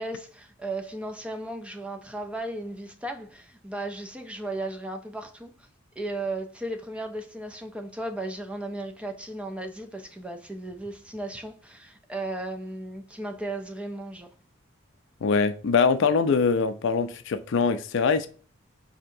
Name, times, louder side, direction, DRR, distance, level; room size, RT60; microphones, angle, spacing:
voice 1, 0.0-5.7 6.0-14.3, right 2 dB, 5° right, 0.4 m, -35 dB
voice 2, 15.2-18.3, left 5 dB, 65° left, 0.4 m, -23 dB
4.4 x 2.8 x 2.6 m
head